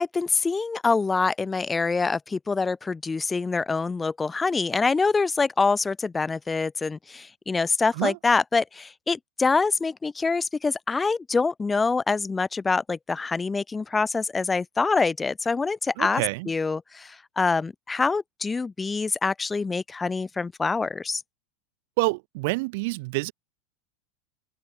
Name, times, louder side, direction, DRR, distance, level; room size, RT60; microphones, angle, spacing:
voice 1, 0.0-16.2 16.5-21.2, left 4 dB, 15° left, 1.2 m, -25 dB
voice 2, 16.0-16.5 22.0-23.3, right 25 dB, 65° right, 2.0 m, -27 dB
hypercardioid pair, 110°, 0 cm